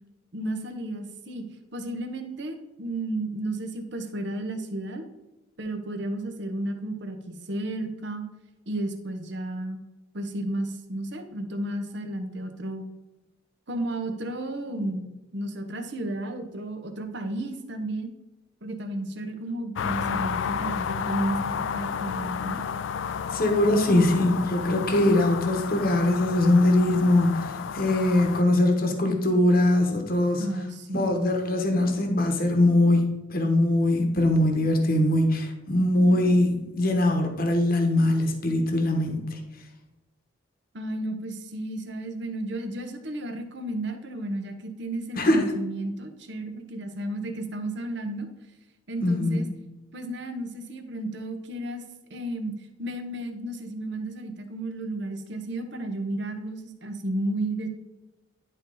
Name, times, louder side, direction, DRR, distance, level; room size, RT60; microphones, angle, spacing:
voice 1, 0.3-5.0 5.6-8.2 8.7-9.8 10.1-12.9 13.7-18.1 18.6-21.4 21.7-22.6 30.4-31.3 40.7-48.3 48.9-49.5 49.9-51.8 52.1-52.5 52.8-57.7, right 1 dB, 60° right, 6 dB, 1.0 m, -33 dB
sound 1, 19.8-28.4, left 7 dB, 65° left, 0.3 m, -32 dB
voice 2, 23.3-30.4 30.9-39.4 45.2-45.5 49.0-49.4, left 1 dB, 45° left, 4 dB, 1.0 m, -22 dB
10.5 x 4.2 x 3.9 m, 0.99 s
head